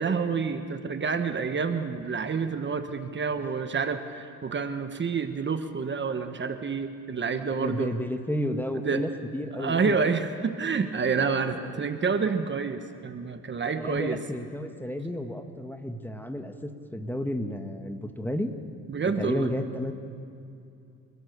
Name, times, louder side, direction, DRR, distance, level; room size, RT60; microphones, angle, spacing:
voice 1, 0.0-7.9 8.7-9.0 9.6-14.2 18.9-19.5, right 5 dB, 40° right, 8 dB, 1.3 m, -28 dB
voice 2, 7.5-10.0 11.6-11.8 13.8-18.5 19.2-19.9, left 1 dB, 5° left, 6 dB, 1.5 m, -32 dB
29.5 x 14.0 x 6.8 m, 2.5 s
cardioid pair, 90°, 30 cm